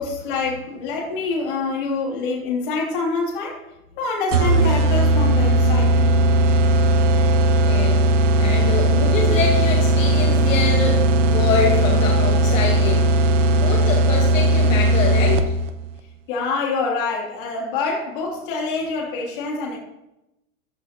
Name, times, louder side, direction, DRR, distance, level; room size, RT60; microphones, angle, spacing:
voice 1, 0.0-3.6 4.0-6.2 16.3-19.8, left 4 dB, 35° left, -2 dB, 2.9 m, -26 dB
sound 1, 4.3-15.7, right 1 dB, 55° right, 0.9 m, -17 dB
voice 2, 7.7-8.0 8.4-15.5, left 5 dB, 60° left, 0 dB, 1.8 m, -25 dB
14.0 x 10.5 x 3.0 m, 0.92 s
supercardioid pair, 175°, 44 cm